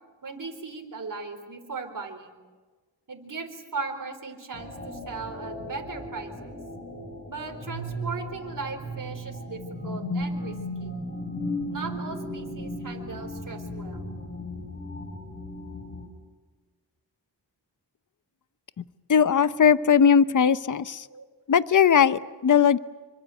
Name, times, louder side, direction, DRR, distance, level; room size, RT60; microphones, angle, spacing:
voice 1, 0.2-2.3 3.1-6.6 7.3-10.5 10.8-11.0 11.7-14.0 21.1-21.3, right 4 dB, 45° right, 5 dB, 4.5 m, -37 dB
sound 1, 4.5-16.1, left 1 dB, 25° left, 7.9 m, -35 dB
voice 2, 19.1-21.1 21.5-22.8, left 7 dB, 45° left, 15 dB, 0.9 m, -19 dB
27.0 x 25.0 x 8.0 m, 1.3 s
wide cardioid pair, 85°, 43 cm